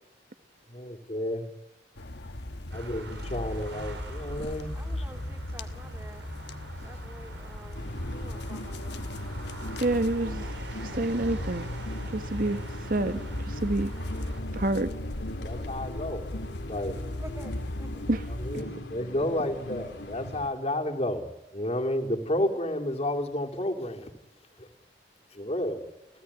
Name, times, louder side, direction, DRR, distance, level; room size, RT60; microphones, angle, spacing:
voice 1, 0.7-1.5 2.7-4.7 15.4-16.3 16.7-17.0 18.4-24.1 24.6-24.7 25.3-25.9, left 1 dB, 35° left, 2 dB, 3.0 m, -31 dB
sound 1, 2.0-18.6, left 1 dB, 70° left, 1.3 m, -37 dB
sound 2, 2.7-14.4, right 2 dB, 85° right, 3.8 m, -44 dB
voice 2, 4.7-6.3 6.8-9.0 17.2-17.5 17.8-18.0, right 1 dB, 15° right, 5 dB, 2.9 m, -48 dB
sound 3, 7.7-20.5, left 1 dB, 90° left, 3.1 m, -40 dB
voice 3, 9.8-10.5 10.8-11.7 12.1-13.2 13.5-13.9 14.5-14.9 18.1-18.2 18.5-18.6, right 2 dB, 55° right, 11 dB, 1.4 m, -28 dB
29.0 x 16.5 x 10.0 m, 0.90 s
head